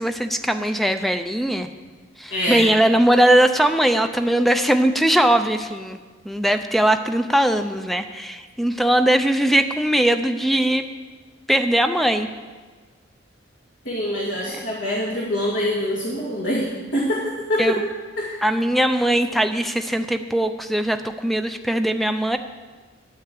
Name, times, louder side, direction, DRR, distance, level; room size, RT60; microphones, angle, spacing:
voice 1, 0.0-1.7 2.2-6.0 6.3-10.9 11.5-12.3 14.6-14.7 17.6-17.7 18.4-22.4, right 1 dB, ahead, 8 dB, 0.5 m, -20 dB
voice 2, 2.3-2.7 13.9-17.8 18.2-18.4, left 1 dB, 70° left, -5 dB, 2.1 m, -25 dB
9.8 x 8.6 x 7.6 m, 1.4 s
head